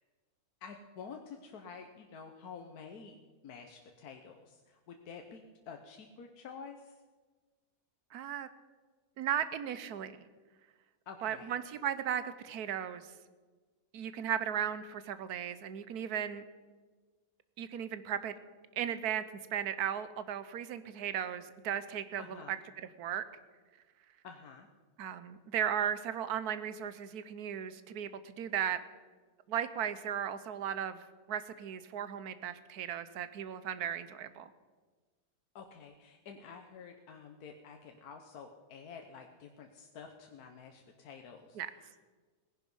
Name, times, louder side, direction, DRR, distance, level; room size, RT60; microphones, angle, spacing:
voice 1, 0.6-3.2 3.4-7.0 11.1-11.6 22.2-22.6 24.2-24.7 35.5-42.0, left 6 dB, 80° left, 4 dB, 1.4 m, -49 dB
voice 2, 8.1-8.5 9.2-10.2 11.2-13.1 13.9-16.5 17.6-18.3 18.8-19.2 19.5-22.6 23.0-23.2 25.0-28.8 29.5-31.0 31.3-34.5 41.6-41.7, right 9 dB, 85° right, 13 dB, 1.3 m, -36 dB
18.0 x 10.5 x 5.4 m, 1.4 s
omnidirectional pair, 1.6 m